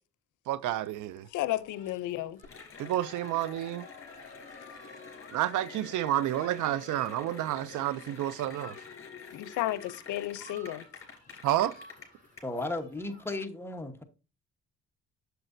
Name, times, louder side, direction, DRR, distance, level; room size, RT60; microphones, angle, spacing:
voice 1, 0.5-1.3 2.8-3.9 5.3-8.7 11.4-11.7, right 13 dB, 80° right, 0.5 m, -30 dB
Human group actions, 0.7-13.3, equal, 25° right, 4.7 m, -56 dB
voice 2, 1.3-2.4 9.3-9.8 10.1-10.8, left 14 dB, 85° left, 0.6 m, -32 dB
Cheering / Applause, 2.4-12.4, left 6 dB, 45° left, 2.9 m, -47 dB
voice 3, 12.4-14.0, left 2 dB, 10° left, 1.1 m, -35 dB
7.8 x 6.9 x 2.6 m
cardioid pair, 90°, 30 cm